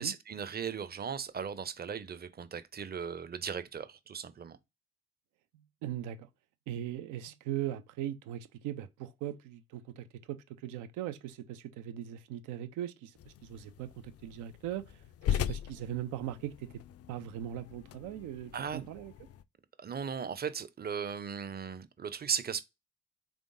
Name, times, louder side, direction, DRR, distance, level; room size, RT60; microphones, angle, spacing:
voice 1, 0.0-4.6 18.5-18.9 19.8-22.6, right 7 dB, 30° right, 0.6 m, -37 dB
voice 2, 5.8-6.3 6.7-15.0 15.3-16.8 17.1-19.1, right 11 dB, 80° right, 0.5 m, -39 dB
sound 1, 13.2-19.4, left 10 dB, 50° left, 0.4 m, -39 dB
3.5 x 3.5 x 2.6 m
hypercardioid pair, 40°, 30 cm